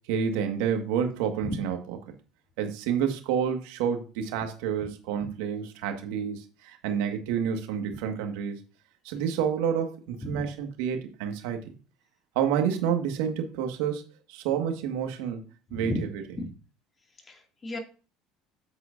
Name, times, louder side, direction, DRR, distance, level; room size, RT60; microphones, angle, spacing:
voice 1, 0.1-2.0 2.6-8.6 9.0-11.6 12.4-14.0 14.3-15.4 15.7-16.2, right 8 dB, 75° right, 5 dB, 1.7 m, -29 dB
voice 2, 17.3-17.8, left 2 dB, 30° left, 3 dB, 2.4 m, -34 dB
9.0 x 8.2 x 2.6 m, 0.36 s
supercardioid pair, 85°, 0 cm